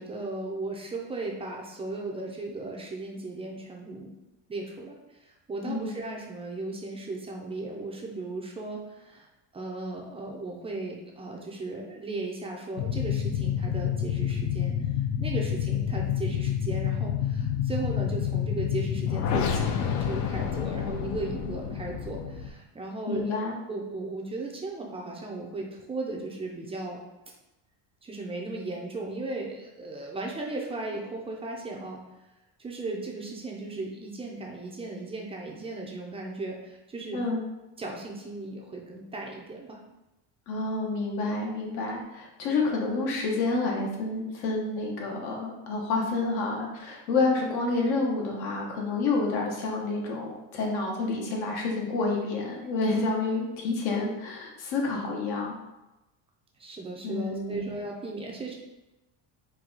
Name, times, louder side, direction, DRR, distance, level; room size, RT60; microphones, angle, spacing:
voice 1, 0.0-4.1 4.5-9.3 9.5-14.8 15.2-23.3 23.7-27.0 28.0-32.0 32.6-37.2 37.8-39.8 41.9-42.0 56.6-58.5, right 2 dB, 15° right, -1 dB, 0.4 m, -36 dB
sound 1, 12.8-22.5, left 9 dB, 50° left, 0.4 m, -28 dB
voice 2, 23.1-23.5 37.1-37.4 40.5-55.6 57.0-57.7, left 3 dB, 70° left, -1 dB, 1.1 m, -29 dB
4.5 x 2.3 x 3.8 m, 0.99 s
cardioid pair, 140°, 39 cm